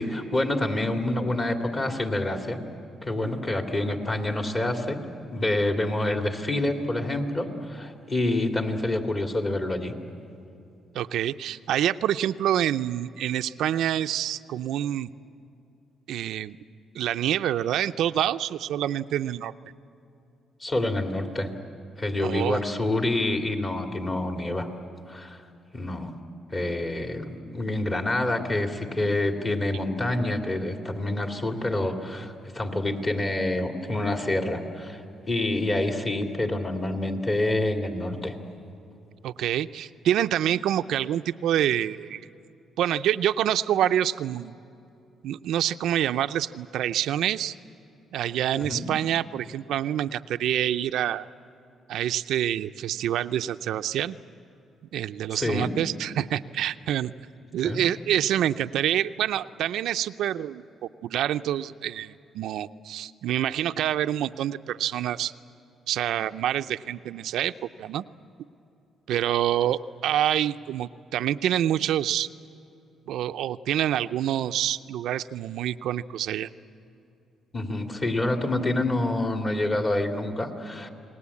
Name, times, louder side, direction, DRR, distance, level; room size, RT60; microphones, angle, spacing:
voice 1, 0.0-2.6 3.0-5.0 5.3-9.9 20.6-21.5 22.0-24.7 25.1-25.4 25.7-26.1 26.5-38.3 48.5-48.9 55.3-55.7 57.6-57.8 77.5-80.9, left 1 dB, 35° left, 4 dB, 2.6 m, -27 dB
voice 2, 10.9-15.1 16.1-16.6 17.0-19.5 22.2-22.6 29.7-29.8 39.2-42.2 42.8-44.6 45.2-47.6 48.1-51.3 51.9-54.2 54.9-57.1 57.5-60.6 61.0-65.3 65.9-67.5 67.8-68.0 69.1-72.3 73.1-76.5, right 11 dB, 80° right, 10 dB, 0.5 m, -26 dB
28.5 x 19.5 x 8.5 m, 2.7 s
cardioid pair, 90°, 0 cm